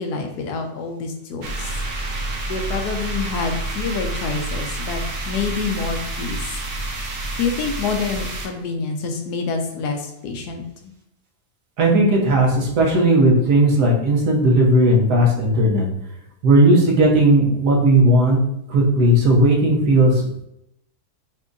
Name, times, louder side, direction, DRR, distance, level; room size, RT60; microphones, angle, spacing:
voice 1, 0.0-1.7 2.5-6.6 7.4-10.9, left 4 dB, 80° left, 4 dB, 1.2 m, -27 dB
sound 1, 1.4-8.5, right 2 dB, 50° right, 0.9 m, -28 dB
voice 2, 11.8-15.9 16.4-18.4 18.7-20.1, right 1 dB, 80° right, -1 dB, 1.5 m, -16 dB
5.8 x 2.8 x 2.6 m, 0.81 s
omnidirectional pair, 1.7 m